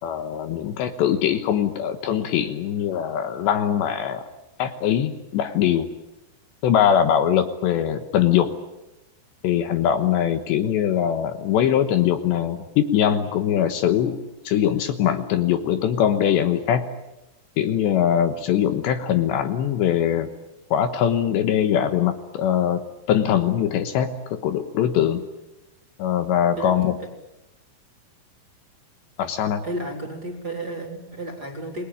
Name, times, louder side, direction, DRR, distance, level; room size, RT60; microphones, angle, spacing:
voice 1, 0.0-4.2 4.6-5.9 6.6-8.5 9.4-14.2 14.4-16.9 17.6-20.3 20.7-22.8 23.1-25.2 26.0-26.9 29.2-29.6, left 9 dB, 75° left, 8 dB, 3.2 m, -22 dB
voice 2, 26.6-27.1 29.6-31.9, right 1 dB, 20° right, 3 dB, 3.4 m, -33 dB
29.0 x 20.5 x 8.9 m, 0.97 s
omnidirectional pair, 5.6 m